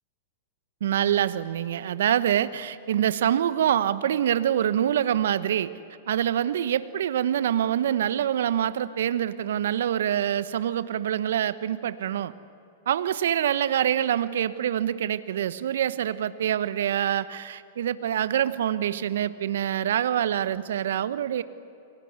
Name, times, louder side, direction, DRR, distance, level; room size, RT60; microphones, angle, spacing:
voice 1, 0.8-5.7 6.1-12.3 12.9-21.4, right 10 dB, 70° right, 14 dB, 1.1 m, -25 dB
30.0 x 23.0 x 8.2 m, 2.7 s
hypercardioid pair, 105°, 0 cm